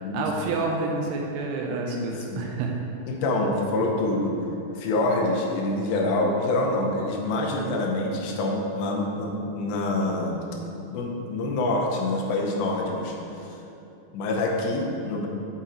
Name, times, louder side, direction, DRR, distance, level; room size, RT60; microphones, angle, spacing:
voice 1, 0.1-2.7, right 3 dB, 80° right, 1 dB, 2.4 m, -28 dB
voice 2, 3.1-4.4 4.8-10.4 10.9-13.6 14.1-15.3, left 2 dB, 85° left, 0 dB, 3.0 m, -26 dB
8.0 x 3.8 x 4.2 m, 2.9 s
omnidirectional pair, 4.9 m